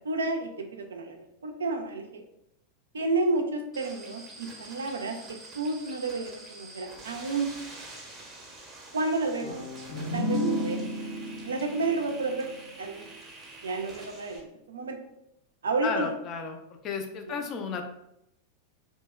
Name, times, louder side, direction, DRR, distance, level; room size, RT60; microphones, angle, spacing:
voice 1, 0.0-2.2 2.9-7.5 8.9-9.6 10.1-11.0 11.4-12.5 12.8-13.1 13.6-15.0 15.6-16.1 17.3-17.4, right 3 dB, 70° right, 5 dB, 0.4 m, -31 dB
sound 1, 3.7-14.4, right 2 dB, 15° right, 0.7 m, -47 dB
sound 2, 9.4-13.1, equal, 75° left, 0.9 m, -33 dB
voice 2, 15.8-16.6 16.8-17.8, left 5 dB, 35° left, 5 dB, 0.4 m, -33 dB
2.7 x 2.7 x 2.3 m, 0.80 s
figure-of-eight pair, 90°, 0 cm